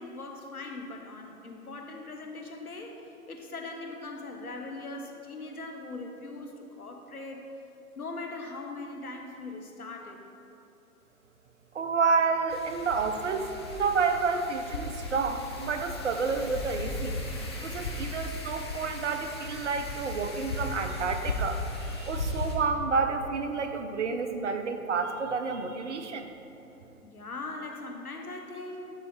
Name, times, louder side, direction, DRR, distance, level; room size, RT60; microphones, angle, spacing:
voice 1, 0.0-7.4 7.9-10.2 27.0-28.9, left 2 dB, 80° left, 2 dB, 1.2 m, -40 dB
voice 2, 11.7-17.2 17.6-26.3, right 4 dB, 55° right, 7 dB, 0.8 m, -30 dB
Wind, 12.5-22.5, left 2 dB, 20° left, 0.4 m, -36 dB
12.0 x 4.2 x 4.9 m, 3.0 s
figure-of-eight pair, 125°, 44 cm